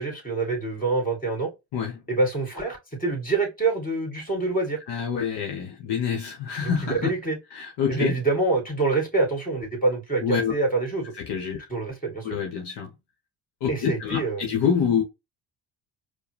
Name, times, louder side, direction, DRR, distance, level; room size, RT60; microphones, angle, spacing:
voice 1, 0.0-1.5 2.1-4.8 6.6-7.4 7.9-11.1 11.7-12.3 13.7-14.4, right 3 dB, 15° left, 2.4 m, -26 dB
voice 2, 4.9-7.1 7.5-8.2 10.2-10.5 11.2-11.6 12.2-12.9 13.6-15.0, left 7 dB, 55° left, 1.1 m, -26 dB
4.7 x 2.3 x 3.3 m
hypercardioid pair, 60°, 49 cm